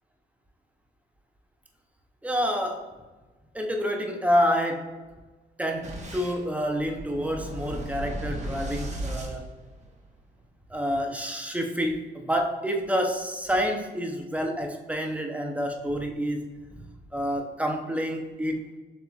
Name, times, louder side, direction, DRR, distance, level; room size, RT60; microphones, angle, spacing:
voice 1, 2.2-2.8 3.5-4.9 5.6-9.4 10.7-16.4 16.8-16.9 17.1-18.7, equal, 5° right, 3 dB, 0.6 m, -28 dB
Boom, 5.8-10.2, right 1 dB, 35° right, 1.1 m, -36 dB
6.8 x 3.0 x 2.3 m, 1.3 s
cardioid pair, 90°, 20 cm